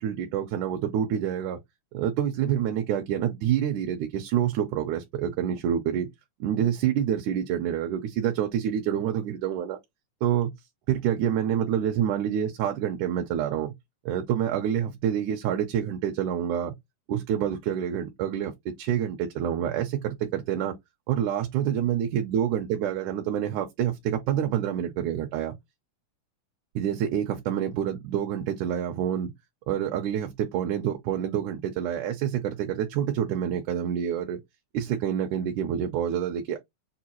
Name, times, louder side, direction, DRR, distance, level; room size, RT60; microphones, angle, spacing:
voice 1, 0.0-1.6 1.9-6.1 6.4-9.8 10.2-10.5 10.9-13.7 14.1-16.7 17.1-18.5 18.8-20.7 21.1-25.6 26.8-29.3 29.7-34.4 34.7-36.6, right 9 dB, 85° right, 2.1 m, -27 dB
6.5 x 2.3 x 2.9 m
omnidirectional pair, 3.4 m